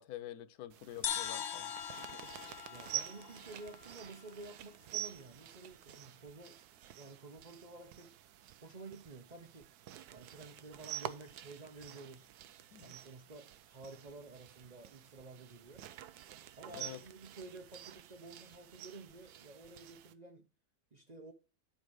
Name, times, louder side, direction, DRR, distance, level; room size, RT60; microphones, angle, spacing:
voice 1, 0.0-1.7 12.7-12.9 16.7-17.0, left 12 dB, 75° left, 1.1 m, -47 dB
sound 1, 0.7-20.1, right 11 dB, 90° right, 1.1 m, -49 dB
sound 2, 1.0-4.5, left 9 dB, 60° left, 0.7 m, -41 dB
voice 2, 2.6-6.6 7.0-8.1 8.6-9.7 10.1-12.3 12.8-15.9 16.6-20.5 20.9-21.3, right 3 dB, 35° right, 0.7 m, -52 dB
10.0 x 4.7 x 4.7 m
omnidirectional pair, 1.6 m